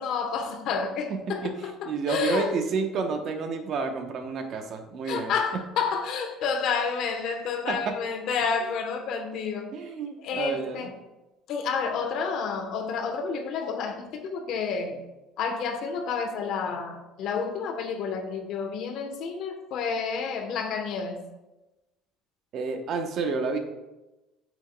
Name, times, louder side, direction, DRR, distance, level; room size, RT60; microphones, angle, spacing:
voice 1, 0.0-2.5 5.0-9.7 10.2-10.9 11.5-15.0 15.4-21.2, left 5 dB, 65° left, 5 dB, 1.0 m, -30 dB
voice 2, 1.4-5.7 7.7-8.0 8.6-8.7 9.7-10.9 22.5-23.6, right 4 dB, 50° right, 6 dB, 0.9 m, -30 dB
8.8 x 6.1 x 2.2 m, 1.0 s
cardioid pair, 120°, 0 cm